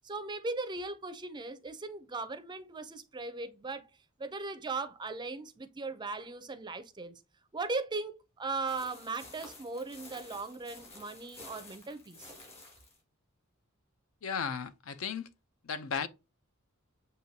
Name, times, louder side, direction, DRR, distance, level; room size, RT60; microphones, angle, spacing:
voice 1, 0.0-3.9 4.2-7.1 7.5-12.3, right 3 dB, 20° right, 0.5 m, -38 dB
sound 1, 8.7-13.0, left 2 dB, 30° left, 1.8 m, -51 dB
voice 2, 14.2-15.3 15.6-16.1, left 6 dB, 70° left, 0.5 m, -35 dB
7.4 x 2.6 x 2.7 m
head